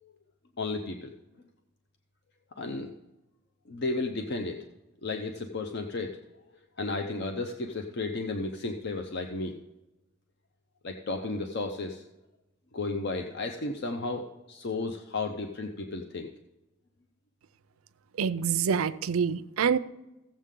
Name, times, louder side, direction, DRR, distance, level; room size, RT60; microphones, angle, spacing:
voice 1, 0.6-1.1 2.6-2.9 3.7-4.6 5.0-6.1 6.8-9.6 10.8-12.0 12.7-16.3, left 3 dB, 50° left, 5 dB, 0.6 m, -33 dB
voice 2, 18.2-19.8, right 7 dB, 75° right, 14 dB, 0.4 m, -26 dB
15.5 x 7.4 x 3.7 m, 1.0 s
head